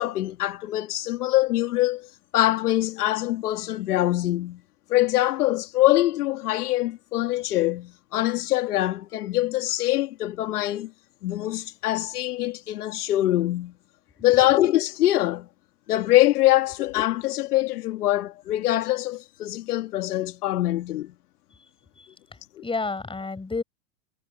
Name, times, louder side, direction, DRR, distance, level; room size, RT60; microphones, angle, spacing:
voice 1, 0.0-4.6 4.9-10.9 11.2-13.7 14.2-15.5 15.9-21.1 22.6-22.7, left 15 dB, 75° left, 1.9 m, -24 dB
voice 2, 22.0-23.6, left 3 dB, 10° left, 6.6 m, -31 dB
hypercardioid pair, 110°, 46 cm